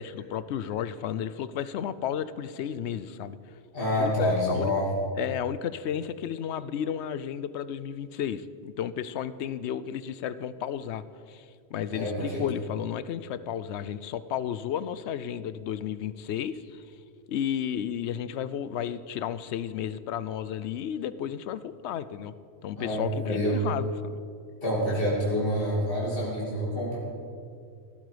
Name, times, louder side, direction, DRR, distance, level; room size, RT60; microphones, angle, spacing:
voice 1, 0.0-3.4 4.0-4.7 5.2-16.8 17.3-22.3 22.6-24.2, left 9 dB, 75° left, 15 dB, 0.9 m, -33 dB
voice 2, 3.7-4.9 11.9-12.4 22.8-23.6 24.6-27.0, equal, 55° left, -6 dB, 2.8 m, -27 dB
16.5 x 12.0 x 5.0 m, 2.4 s
omnidirectional pair, 1.2 m